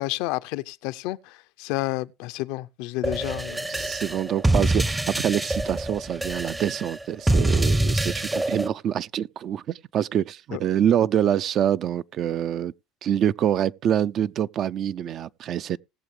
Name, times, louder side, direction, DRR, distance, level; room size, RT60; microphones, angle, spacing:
voice 1, 0.0-3.9 10.5-10.6, left 18 dB, 75° left, 0.6 m, -31 dB
sound 1, 3.0-8.7, right 1 dB, 10° right, 0.7 m, -25 dB
voice 2, 3.7-12.7 13.0-15.8, right 10 dB, 50° right, 0.5 m, -25 dB
19.0 x 7.1 x 3.3 m
supercardioid pair, 100°, 0 cm